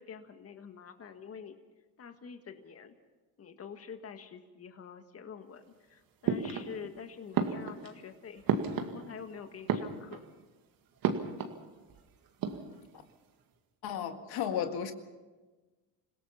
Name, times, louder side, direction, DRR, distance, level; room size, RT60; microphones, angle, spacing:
voice 1, 0.0-1.5 2.0-2.9 3.4-8.5 8.8-10.2, left 7 dB, 35° left, 1.7 m, -46 dB
sound 1, 6.2-7.0 7.3-9.3 9.6-10.4 11.0-11.6 11.9-12.0 12.3-13.0, right 6 dB, 60° right, 2.1 m, -33 dB
voice 2, 13.8-14.9, left 8 dB, 65° left, 1.9 m, -33 dB
26.5 x 17.0 x 5.7 m
supercardioid pair, 90°, 40 cm